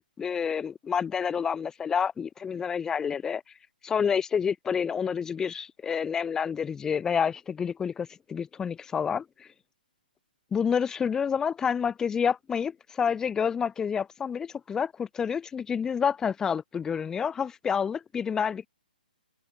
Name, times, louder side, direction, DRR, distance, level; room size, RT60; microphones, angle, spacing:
voice 1, 0.0-3.4 3.8-9.5 10.5-18.7, left 7 dB, 10° left, 4.8 m, -28 dB
figure-of-eight pair, 130°, 5 cm